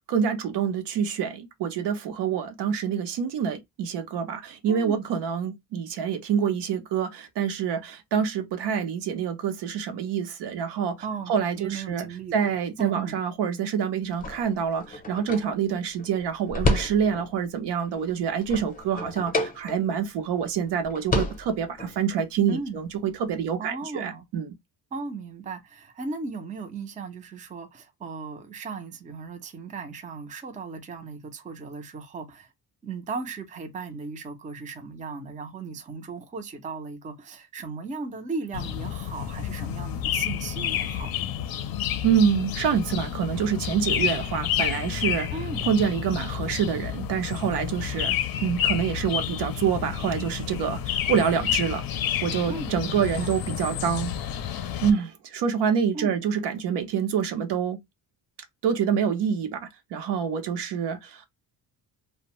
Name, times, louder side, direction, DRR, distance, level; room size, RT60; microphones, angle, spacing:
voice 1, 0.1-11.0 11.3-12.1 12.3-24.5 42.0-45.3 45.7-48.2 48.4-51.8 52.2-54.1 54.8-57.8 58.6-61.3, right 7 dB, 75° right, 0.7 m, -26 dB
voice 2, 4.7-5.0 11.0-11.3 11.6-12.5 12.8-13.2 22.5-22.8 23.6-24.3 24.9-32.5 32.8-41.3 45.3-45.7 52.5-53.3 55.9-56.2, right 4 dB, 20° right, 0.4 m, -36 dB
sound 1, 14.1-17.4 17.9-20.1 20.4-20.5 20.8-22.0, left 2 dB, 20° left, 0.7 m, -30 dB
sound 2, 38.5-54.9, left 10 dB, 60° left, 0.5 m, -30 dB
2.5 x 2.1 x 2.9 m
cardioid pair, 130°, 42 cm